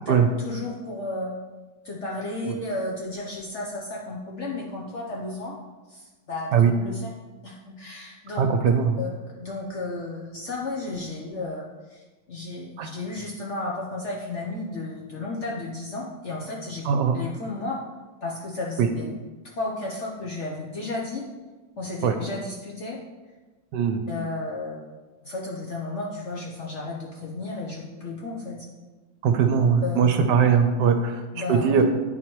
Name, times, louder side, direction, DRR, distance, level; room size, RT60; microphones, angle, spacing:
voice 1, 0.0-1.4 1.8-5.6 5.9-7.1 7.4-8.4 9.0-16.9 17.1-17.8 18.2-19.1 19.5-21.3 21.8-23.0 24.1-24.9 25.2-28.7 29.8-30.0 31.3-31.8, left 2 dB, 55° left, -3 dB, 0.8 m, -33 dB
voice 2, 8.4-8.9 12.8-12.9 16.9-17.1 18.8-18.9 22.0-22.1 23.7-24.0 29.2-31.2 31.5-31.8, right 7 dB, 75° right, 6 dB, 1.2 m, -20 dB
10.0 x 4.3 x 3.0 m, 1.2 s
omnidirectional pair, 2.0 m